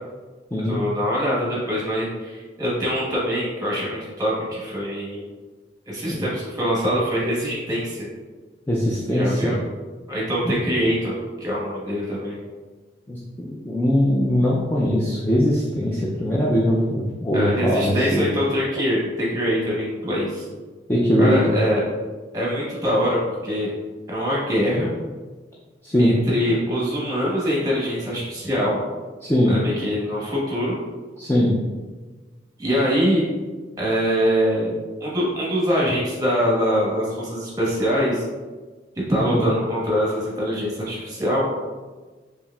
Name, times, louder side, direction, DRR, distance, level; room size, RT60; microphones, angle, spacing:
voice 1, 0.7-5.3 5.9-8.1 9.1-9.5 10.1-12.4 17.3-20.5 21.2-21.8 22.3-23.7 24.1-24.9 26.0-28.8 29.5-30.8 32.6-33.2 33.8-34.7 35.0-38.2 39.1-41.5, equal, 20° right, -5 dB, 1.1 m, -23 dB
voice 2, 8.7-9.6 10.4-10.5 13.1-18.3 20.9-21.6 25.8-26.2 29.2-29.6 31.2-31.5 39.3-39.5, equal, 10° left, -5 dB, 0.3 m, -21 dB
4.4 x 3.2 x 2.3 m, 1.3 s
head